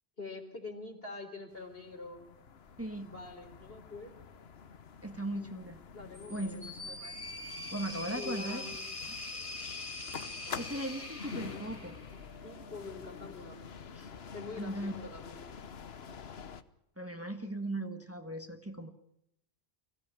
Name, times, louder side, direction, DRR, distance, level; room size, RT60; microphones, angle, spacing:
voice 1, 0.2-2.2 3.0-4.1 5.4-5.6 5.9-6.6 8.1-8.8 12.4-13.7 14.3-15.4 17.5-17.6, left 3 dB, 70° left, 4 dB, 4.1 m, -45 dB
sound 1, 1.5-16.6, left 6 dB, 85° left, 1.3 m, -47 dB
voice 2, 2.8-3.1 5.0-5.8 6.3-7.1 7.7-8.7 9.0-9.2 10.5-12.0 13.9-14.1 14.6-15.1 17.0-18.9, right 1 dB, 15° right, 6 dB, 1.6 m, -38 dB
sound 2, 6.1-12.4, left 2 dB, 30° left, 2.0 m, -43 dB
24.0 x 16.0 x 8.9 m, 0.79 s
omnidirectional pair, 1.0 m